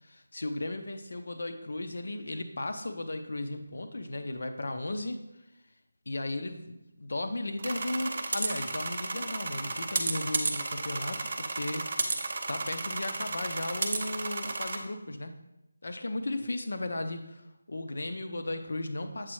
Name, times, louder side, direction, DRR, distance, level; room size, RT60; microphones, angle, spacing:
voice 1, 0.0-5.2 6.1-12.2 12.5-15.4 15.8-19.3, left 2 dB, 60° left, 7 dB, 0.5 m, -35 dB
sound 1, 7.6-14.8, right 3 dB, 35° right, 0.5 m, -33 dB
7.4 x 4.0 x 3.1 m, 0.91 s
figure-of-eight pair, 175°, 0 cm